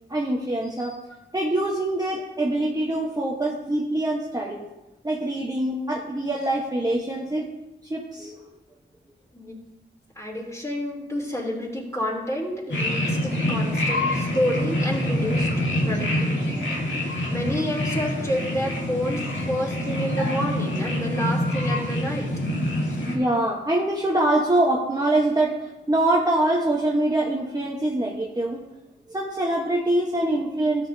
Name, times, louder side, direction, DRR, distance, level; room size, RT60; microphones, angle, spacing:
voice 1, 0.1-0.9 1.3-4.7 5.0-7.4 7.9-8.4 16.7-16.9 23.1-28.6 29.1-30.9, right 1 dB, 20° right, -2 dB, 1.2 m, -24 dB
voice 2, 10.1-15.5 15.8-16.7 17.3-22.3, equal, 15° left, -3 dB, 3.0 m, -29 dB
sound 1, 12.7-23.2, left 1 dB, 75° left, 2.1 m, -26 dB
13.0 x 7.3 x 2.8 m, 0.98 s
cardioid pair, 50°, 19 cm